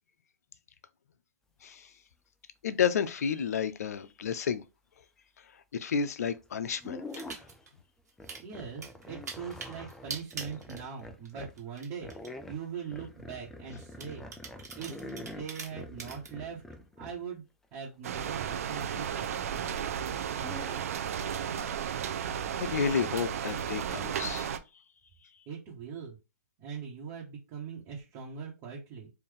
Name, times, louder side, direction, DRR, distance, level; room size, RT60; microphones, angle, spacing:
voice 1, 2.6-4.6 5.7-7.2 22.5-24.5, left 7 dB, 70° left, 0.5 m, -31 dB
sound 1, 6.3-6.4 6.8-7.7 8.2-11.6 12.0-17.2 20.3-20.8, left 2 dB, 5° left, 0.3 m, -45 dB
sound 2, 7.1-7.7 8.1-8.4 8.8-11.3 11.6-12.3 12.9-13.0 14.0-16.3, right 5 dB, 85° right, 1.3 m, -42 dB
voice 2, 8.4-12.1 12.5-14.2 14.7-14.9 15.2-16.6 17.0-17.4 17.7-19.7 25.5-26.2 26.6-29.1, right 6 dB, 35° right, 1.2 m, -41 dB
sound 3, 18.0-24.6, right 8 dB, 60° right, 0.5 m, -34 dB
3.4 x 2.6 x 3.8 m
hypercardioid pair, 140°, 9 cm